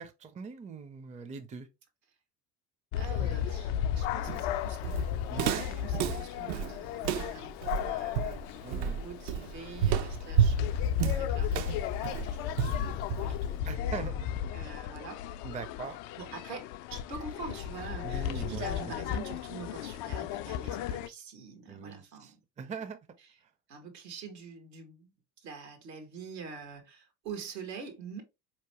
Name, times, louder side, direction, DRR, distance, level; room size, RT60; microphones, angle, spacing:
voice 1, 0.0-1.7 5.3-5.7 8.6-9.0 13.6-14.3 15.4-16.0 18.0-18.7 21.7-23.0, right 5 dB, 15° right, 0.5 m, -41 dB
sound 1, 2.9-21.1, left 9 dB, 55° left, 0.5 m, -34 dB
voice 2, 2.9-5.0 5.4-14.0 14.5-15.2 16.2-22.4 23.2-23.4 23.7-25.1 25.4-28.2, right 5 dB, 80° right, 1.2 m, -45 dB
Walk footsteps, 4.3-13.5, right 9 dB, 60° right, 0.6 m, -31 dB
4.3 x 3.0 x 2.9 m
hypercardioid pair, 65°, 49 cm